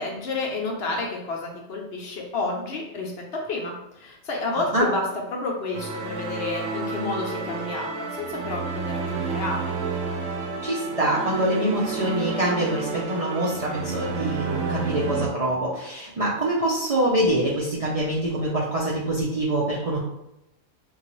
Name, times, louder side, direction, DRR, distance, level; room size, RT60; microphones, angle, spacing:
voice 1, 0.0-9.9, left 3 dB, 60° left, 0 dB, 0.8 m, -30 dB
sound 1, 5.7-15.3, right 4 dB, 80° right, 1.0 m, -30 dB
voice 2, 10.6-20.0, right 1 dB, 50° right, -6 dB, 0.4 m, -25 dB
3.9 x 2.3 x 3.0 m, 0.85 s
omnidirectional pair, 1.3 m